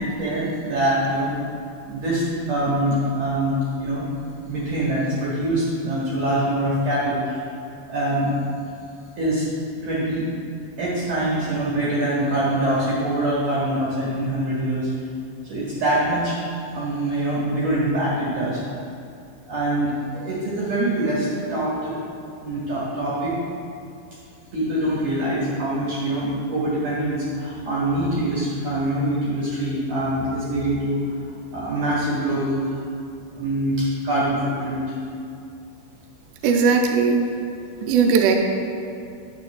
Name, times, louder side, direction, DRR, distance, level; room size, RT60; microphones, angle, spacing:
voice 1, 0.2-1.3 1.9-4.1 4.5-7.4 7.9-8.3 9.2-9.5 9.8-10.2 10.8-14.9 15.4-16.5 16.7-18.6 19.5-21.9 22.4-23.3 24.5-31.0 31.5-32.8 33.3-34.9, right 1 dB, 55° right, -7 dB, 2.4 m, -24 dB
voice 2, 36.4-37.2 37.9-38.4, right 5 dB, 85° right, 2 dB, 3.2 m, -18 dB
11.0 x 8.9 x 2.4 m, 2.6 s
omnidirectional pair, 5.6 m